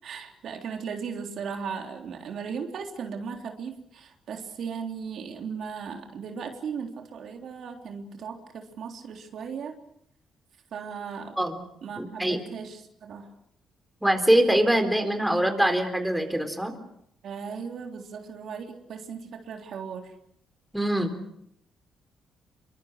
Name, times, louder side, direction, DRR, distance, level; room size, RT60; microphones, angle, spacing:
voice 1, 0.0-9.8 10.7-11.5 11.8-13.3 17.2-20.1, right 6 dB, 65° right, 3 dB, 3.5 m, -37 dB
voice 2, 12.0-12.4 14.0-16.7 20.7-21.1, right 1 dB, 5° right, 6 dB, 4.0 m, -23 dB
26.5 x 24.0 x 6.6 m, 0.73 s
cardioid pair, 90°, 0 cm